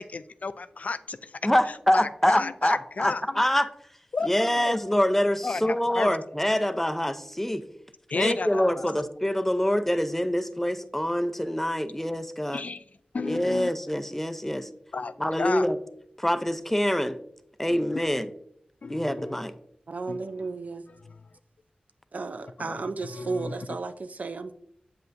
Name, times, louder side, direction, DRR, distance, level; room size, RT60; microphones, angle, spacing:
voice 1, 0.0-1.4 1.9-3.4 4.1-4.3 4.5-4.7 5.4-6.1 8.1-8.8 12.5-12.8 13.1-13.7 14.9-15.7 17.7-18.0 18.8-19.4 20.1-20.5 21.0-21.1 22.6-23.5, left 4 dB, 60° left, 14 dB, 0.3 m, -33 dB
voice 2, 1.4-3.7 4.2-7.6 8.1-12.6 13.2-14.7 15.2-15.8 16.2-17.2 17.6-18.3 18.9-19.5, equal, 10° left, 10 dB, 0.5 m, -25 dB
voice 3, 19.9-20.8 22.1-24.5, right 3 dB, 65° right, 10 dB, 0.5 m, -33 dB
7.7 x 5.5 x 2.6 m, 0.69 s
cardioid pair, 45°, 3 cm